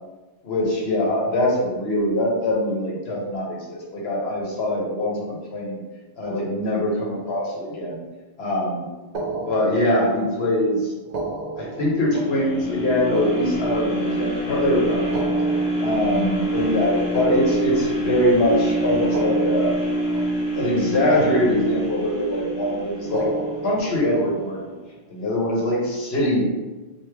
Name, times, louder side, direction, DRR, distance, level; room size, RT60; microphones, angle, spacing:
voice 1, 0.4-5.8 6.2-8.0 8.4-8.8 9.5-10.9 11.6-15.1 15.8-19.7 20.6-23.3 23.6-24.7 25.1-26.4, left 1 dB, 75° left, -3 dB, 1.2 m, -23 dB
sound 1, 9.1-10.4 11.0-14.3 15.0-18.3 19.0-20.9 21.1-22.2 23.0-24.8, right 3 dB, 50° right, 0.6 m, -34 dB
sound 2, 12.1-24.2 24.7-24.8, right 1 dB, 40° left, 0.8 m, -26 dB
3.1 x 2.5 x 3.4 m, 1.2 s
omnidirectional pair, 1.1 m